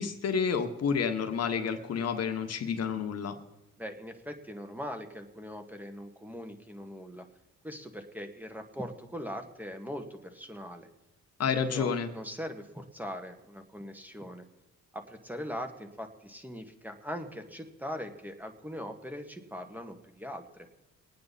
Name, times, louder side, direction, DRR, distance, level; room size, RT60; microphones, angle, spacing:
voice 1, 0.0-3.3 11.4-12.1, left 6 dB, 55° left, 7 dB, 1.5 m, -30 dB
voice 2, 3.8-7.3 7.6-10.9 11.7-14.5 14.9-20.7, equal, 5° right, 6 dB, 1.8 m, -41 dB
23.5 x 9.4 x 4.2 m, 0.96 s
cardioid pair, 90°, 30 cm